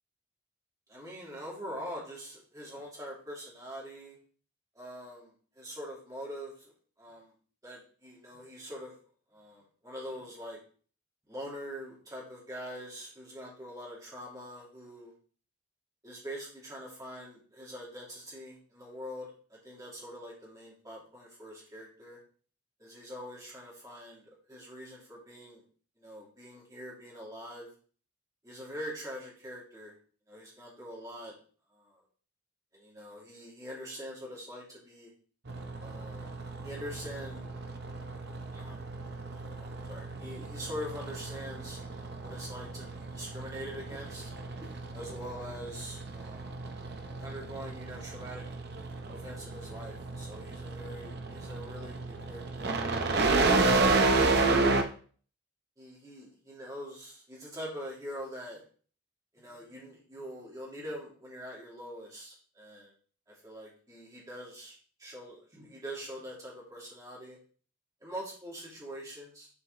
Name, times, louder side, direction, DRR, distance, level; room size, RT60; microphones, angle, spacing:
voice 1, 0.9-4.2 4.7-5.3 5.6-6.7 7.0-7.3 7.6-8.9 9.3-10.6 11.3-15.1 16.0-22.2 22.8-24.2 24.5-25.6 26.0-27.7 28.4-29.9 30.3-31.3 31.7-32.0 32.7-35.1 35.8-36.3 36.6-37.5 38.5-38.8 39.3-44.3 44.6-46.6 47.2-48.4 49.0-52.8 54.2-54.9 55.8-58.6 59.3-62.9 63.3-67.4 68.0-69.5, equal, 15° right, -5 dB, 2.5 m, -44 dB
sound 1, 35.5-54.8, right 3 dB, 50° right, 0.7 m, -32 dB
6.8 x 4.6 x 3.9 m, 0.43 s
head